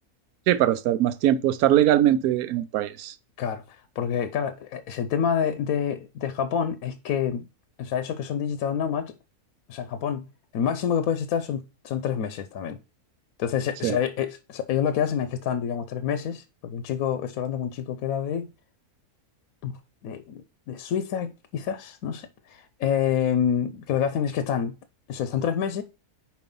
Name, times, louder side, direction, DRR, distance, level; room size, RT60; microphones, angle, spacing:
voice 1, 0.5-3.1 13.8-14.0, right 12 dB, 75° right, 1.1 m, -21 dB
voice 2, 3.4-7.5 7.8-9.1 9.7-10.2 10.5-12.8 13.4-18.5 19.6-19.8 20.0-24.8 25.1-25.8, left 8 dB, 75° left, 1.0 m, -27 dB
5.4 x 4.7 x 5.2 m
omnidirectional pair, 1.6 m